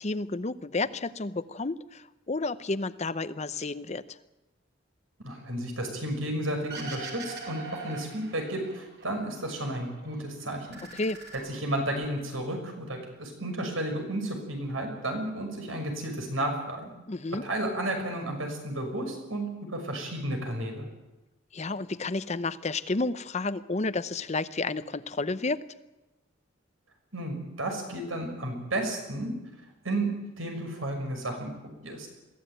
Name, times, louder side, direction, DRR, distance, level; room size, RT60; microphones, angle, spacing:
voice 1, 0.0-4.2 10.9-11.2 17.1-17.4 21.5-25.6, left 3 dB, 35° left, 14 dB, 0.7 m, -31 dB
voice 2, 5.2-10.8 11.4-16.9 17.4-20.8 27.1-29.3 29.8-30.1 30.4-32.1, right 1 dB, 85° right, 3 dB, 6.1 m, -32 dB
sound 1, 6.7-9.0 9.4-10.2 10.5-12.1, right 3 dB, 55° right, 5.4 m, -42 dB
22.5 x 15.0 x 9.2 m, 1.0 s
head